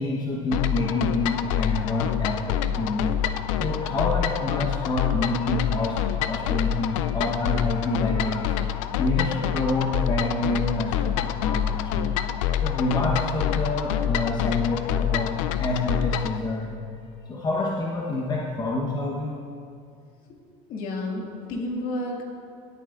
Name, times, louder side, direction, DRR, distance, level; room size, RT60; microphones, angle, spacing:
voice 1, 0.0-3.2 3.6-12.2 12.6-16.7 17.3-19.4, left 2 dB, 25° left, -3 dB, 1.1 m, -27 dB
sound 1, 0.5-16.4, left 10 dB, 85° left, 0.4 m, -27 dB
voice 2, 20.7-22.3, left 1 dB, 55° left, -1 dB, 2.1 m, -31 dB
17.5 x 9.0 x 2.5 m, 2.4 s
supercardioid pair, 110°, 16 cm